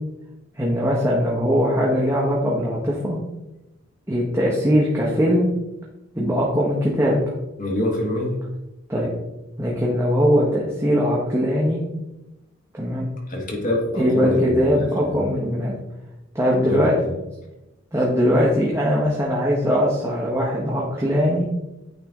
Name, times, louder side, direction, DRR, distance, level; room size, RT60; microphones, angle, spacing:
voice 1, 0.6-3.2 4.1-5.5 6.1-7.2 8.9-9.1 9.6-11.8 12.7-13.1 14.0-15.7 16.3-16.9 17.9-21.5, equal, 15° right, -4 dB, 0.9 m, -20 dB
voice 2, 7.6-8.3 13.3-15.1 16.6-16.9, left 1 dB, 40° left, -1 dB, 1.2 m, -25 dB
9.0 x 3.3 x 3.5 m, 0.97 s
head